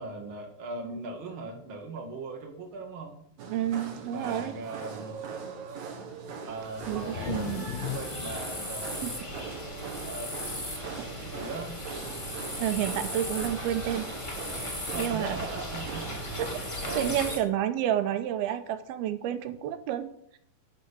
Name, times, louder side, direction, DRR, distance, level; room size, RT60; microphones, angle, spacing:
voice 1, 0.0-3.2 4.1-5.2 6.4-9.2 10.0-10.3 11.2-11.8 14.9-16.1 16.4-17.3, right 3 dB, 40° right, 2 dB, 2.3 m, -39 dB
sound 1, 3.4-17.1, right 5 dB, 60° right, 2.4 m, -41 dB
voice 2, 3.5-4.5 6.9-7.7 9.0-9.1 11.0-11.1 12.6-14.1 14.6-15.4 16.4-16.5 16.9-20.4, right 11 dB, 90° right, 9 dB, 2.7 m, -30 dB
sound 2, 6.5-17.4, left 1 dB, 25° left, 0.6 m, -37 dB
sound 3, 6.8-10.5 10.9-11.0 11.4-11.9 13.0-13.1 14.1-14.2, left 13 dB, 80° left, 2.1 m, -39 dB
12.0 x 4.8 x 8.4 m, 0.70 s
omnidirectional pair, 4.3 m